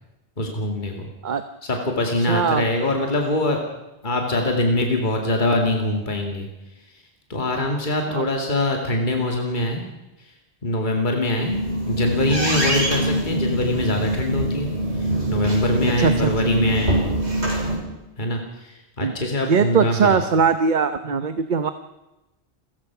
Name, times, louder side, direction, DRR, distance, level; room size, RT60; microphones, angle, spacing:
voice 1, 0.4-1.1 1.6-3.6 4.0-6.5 7.3-9.8 10.6-11.5 11.9-14.7 15.0-17.0 18.2-20.2, left 1 dB, 45° left, 2 dB, 2.5 m, -23 dB
voice 2, 2.2-2.7 8.1-8.3 16.0-16.3 19.0-19.1 19.5-21.7, right 6 dB, 45° right, 10 dB, 1.0 m, -20 dB
sound 1, 11.3-17.8, right 1 dB, 85° right, 6.4 m, -24 dB
29.0 x 15.5 x 6.0 m, 0.96 s
omnidirectional pair, 1.1 m